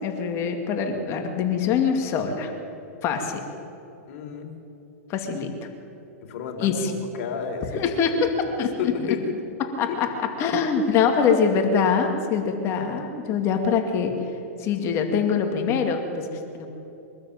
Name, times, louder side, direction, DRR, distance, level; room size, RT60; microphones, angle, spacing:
voice 1, 0.0-2.5 3.0-3.4 5.1-5.5 6.6-6.9 7.7-8.3 8.6-8.9 9.8-10.1 10.4-14.1 14.6-16.3 16.5-16.7, left 6 dB, 35° left, 4 dB, 2.4 m, -23 dB
voice 2, 4.1-4.5 6.3-7.8 8.2-9.4 9.9-10.0, left 6 dB, 55° left, 3 dB, 3.9 m, -32 dB
23.5 x 13.0 x 8.8 m, 2.8 s
hypercardioid pair, 135°, 8 cm